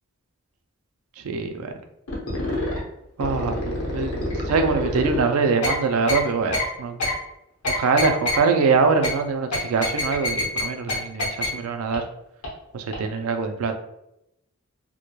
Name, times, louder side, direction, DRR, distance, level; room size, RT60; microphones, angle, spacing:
voice 1, 1.2-1.7 3.2-7.0 7.7-12.0 12.7-13.8, right 4 dB, 75° right, 7 dB, 0.4 m, -23 dB
sound 1, 2.1-2.8 3.2-5.2 5.6-5.7 6.1-6.2 6.5-6.6 7.0-7.1 7.6-8.4 9.0-9.1 9.5-10.6 10.9-11.0 11.2-11.5 11.9-12.0 12.4-12.5 12.9-13.0, left 2 dB, 85° left, 0.8 m, -26 dB
2.2 x 2.1 x 3.0 m, 0.83 s
head